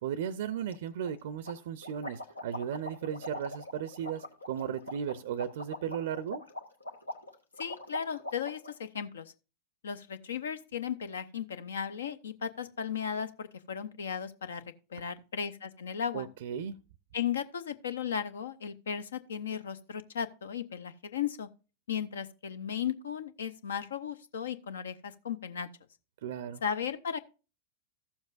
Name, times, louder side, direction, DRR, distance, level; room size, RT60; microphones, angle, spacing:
voice 1, 0.0-6.4 16.1-16.8 26.2-26.6, right 8 dB, 55° right, 0.5 m, -36 dB
sound 1, 0.7-0.8 1.0-1.1 1.5-8.7, left 1 dB, 85° left, 1.2 m, -42 dB
voice 2, 7.6-9.3 9.8-14.6 14.9-16.3 17.1-21.5 21.9-25.7 26.6-27.2, left 8 dB, 65° left, 0.7 m, -36 dB
14.5 x 7.1 x 2.5 m
figure-of-eight pair, 90°, 0 cm